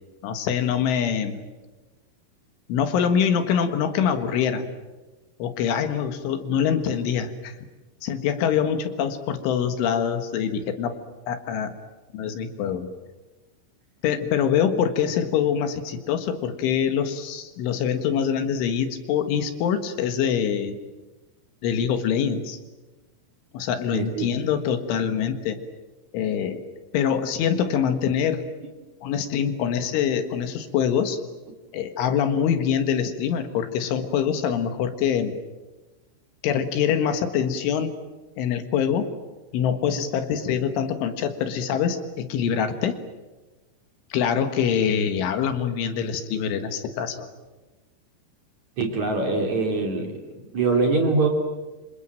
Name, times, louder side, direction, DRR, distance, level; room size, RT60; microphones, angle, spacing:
voice 1, 0.2-1.4 2.7-4.7 5.4-7.6 8.0-10.9 11.3-11.7 12.1-12.9 14.0-20.8 21.6-22.6 23.5-25.6 26.1-26.6 26.9-28.4 29.0-31.2 31.7-35.4 36.4-37.9 38.4-39.1 39.5-43.0 44.1-47.3, left 8 dB, 75° left, 8 dB, 3.9 m, -24 dB
voice 2, 23.9-24.3 48.8-50.1 50.5-51.3, right 3 dB, 40° right, 2 dB, 3.8 m, -23 dB
27.5 x 26.5 x 7.6 m, 1.1 s
omnidirectional pair, 5.8 m